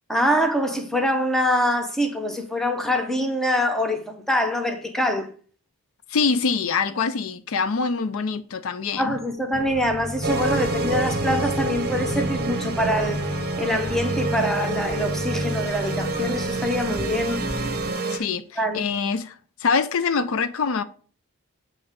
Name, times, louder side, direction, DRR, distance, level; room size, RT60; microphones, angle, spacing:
voice 1, 0.1-5.3 9.0-13.2 13.6-17.4 18.6-18.9, equal, ahead, 0.8 m, -24 dB
voice 2, 6.1-9.2 18.1-20.8, left 5 dB, 65° left, 0.4 m, -24 dB
sound 1, 9.5-17.9, equal, 45° left, 2.2 m, -32 dB
sound 2, 10.2-18.2, right 3 dB, 45° right, 0.8 m, -28 dB
7.8 x 3.2 x 5.1 m
head